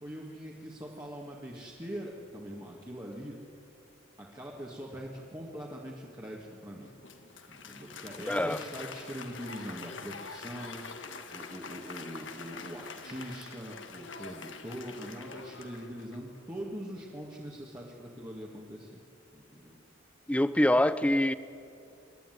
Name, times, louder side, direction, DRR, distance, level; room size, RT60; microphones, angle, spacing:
voice 1, 0.0-3.4 4.2-6.9 7.5-10.8 11.3-19.0 19.3-19.8, equal, 20° right, -4 dB, 2.0 m, -42 dB
Applause, 6.8-16.4, left 4 dB, 70° left, 1.7 m, -45 dB
voice 2, 8.3-8.6 20.3-21.3, left 1 dB, 5° left, 14 dB, 0.5 m, -25 dB
27.0 x 12.0 x 9.4 m, 2.5 s
head